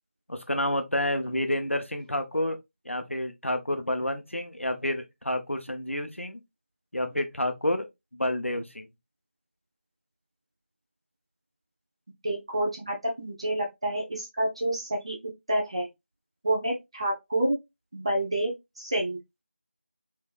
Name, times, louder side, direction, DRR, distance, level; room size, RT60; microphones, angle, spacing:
voice 1, 0.3-2.6 2.8-6.4 6.9-7.9 8.1-8.9, left 1 dB, 85° left, 0.9 m, -29 dB
voice 2, 12.2-15.2 15.5-15.9 16.4-17.6 17.9-19.2, right 1 dB, 25° right, 0.7 m, -28 dB
3.3 x 3.3 x 2.5 m
figure-of-eight pair, 170°, 7 cm